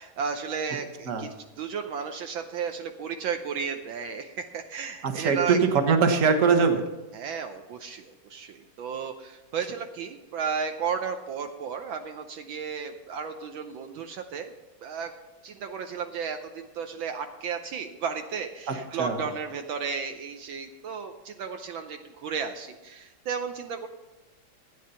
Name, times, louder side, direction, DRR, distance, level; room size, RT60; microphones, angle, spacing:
voice 1, 0.0-5.6 7.1-14.5 14.8-15.1 15.4-23.9, right 6 dB, 75° right, 6 dB, 1.5 m, -34 dB
voice 2, 5.0-6.8 19.0-19.3, right 5 dB, 45° right, 6 dB, 1.4 m, -22 dB
13.5 x 9.4 x 5.6 m, 1.1 s
omnidirectional pair, 2.3 m